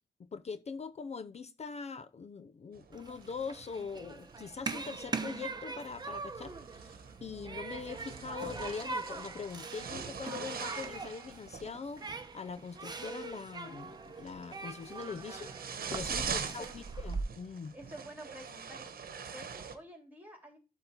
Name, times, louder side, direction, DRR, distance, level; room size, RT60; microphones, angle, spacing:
voice 1, 0.2-17.8, left 5 dB, 45° left, 0.5 m, -42 dB
sound 1, 2.7-19.8, right 6 dB, 70° right, 1.1 m, -45 dB
Human group actions, 2.9-17.2, right 4 dB, 25° right, 0.9 m, -42 dB
voice 2, 16.2-16.8 17.7-18.9 19.2-20.6, right 1 dB, 10° right, 3.2 m, -50 dB
12.0 x 4.0 x 4.4 m
wide cardioid pair, 125°, 16 cm